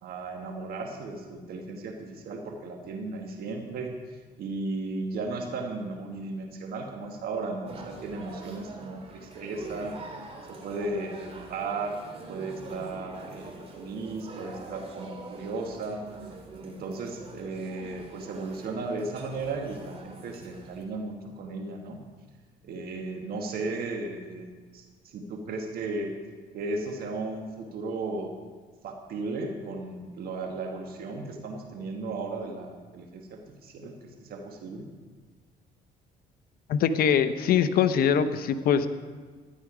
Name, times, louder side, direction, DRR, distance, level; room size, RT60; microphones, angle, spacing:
voice 1, 0.0-4.0 4.4-10.0 10.5-12.0 12.3-16.0 16.6-22.0 22.6-26.1 26.5-28.3 28.8-34.9, right 3 dB, 65° right, 3 dB, 1.4 m, -35 dB
sound 1, 7.6-20.8, right 3 dB, 35° right, 2.3 m, -44 dB
voice 2, 36.7-38.9, left 8 dB, 60° left, 11 dB, 0.8 m, -23 dB
13.0 x 10.5 x 5.0 m, 1.5 s
cardioid pair, 110°, 17 cm